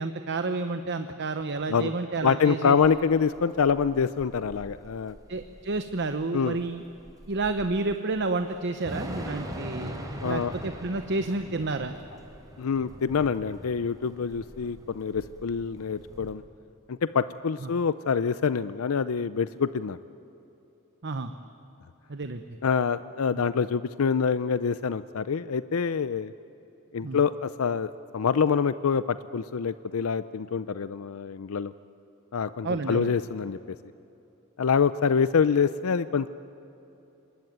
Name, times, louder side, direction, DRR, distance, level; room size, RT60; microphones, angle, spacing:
voice 1, 0.0-2.8 5.3-6.8 7.3-10.0 10.2-11.9 17.6-17.7 21.0-21.3 22.1-22.4 23.4-23.5 27.0-27.2 32.6-33.1, right 3 dB, 55° right, 8 dB, 0.9 m, -30 dB
voice 2, 2.2-5.2 6.3-6.6 10.2-10.5 12.6-16.4 16.9-20.0 22.6-26.3 26.9-31.7 32.3-33.8 34.6-36.3, left 6 dB, 75° left, 14 dB, 0.5 m, -26 dB
Thunder / Rain, 2.8-16.3, equal, 15° right, 3.5 m, -42 dB
26.0 x 20.5 x 9.3 m, 2.9 s
head